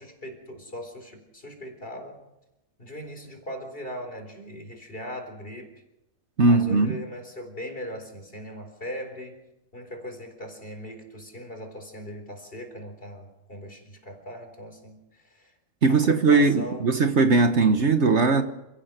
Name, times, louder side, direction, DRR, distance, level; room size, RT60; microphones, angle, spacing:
voice 1, 0.0-2.2 2.8-5.7 6.4-9.4 9.7-15.6 15.9-16.9, equal, 40° left, 4 dB, 4.4 m, -39 dB
voice 2, 6.4-7.0 15.8-18.4, right 3 dB, 55° right, 8 dB, 1.5 m, -19 dB
29.5 x 15.0 x 6.7 m, 0.93 s
omnidirectional pair, 1.5 m